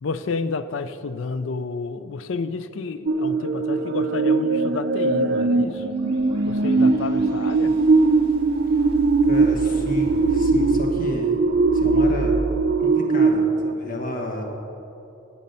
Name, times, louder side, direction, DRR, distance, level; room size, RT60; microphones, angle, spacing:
voice 1, 0.0-5.9 6.5-7.8, left 4 dB, 70° left, 13 dB, 0.4 m, -30 dB
sound 1, 3.1-13.7, right 3 dB, 55° right, 0.4 m, -20 dB
Space Bubbles, 5.7-12.5, equal, 25° right, 2.2 m, -35 dB
voice 2, 9.2-11.4 11.7-12.4 12.8-14.4, left 1 dB, 45° left, 2 dB, 1.4 m, -31 dB
12.0 x 7.6 x 5.4 m, 3.0 s
head